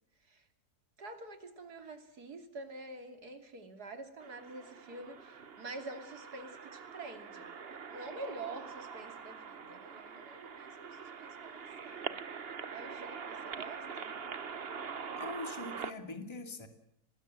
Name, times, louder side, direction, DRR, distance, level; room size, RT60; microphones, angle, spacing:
voice 1, 1.0-7.5 7.9-12.2 12.7-14.1, right 2 dB, 85° right, 6 dB, 3.4 m, -47 dB
sound 1, 4.2-15.9, right 6 dB, 45° right, 1.3 m, -44 dB
voice 2, 15.2-16.7, left 2 dB, 15° left, 6 dB, 2.4 m, -42 dB
26.5 x 20.0 x 7.7 m, 0.75 s
omnidirectional pair, 1.6 m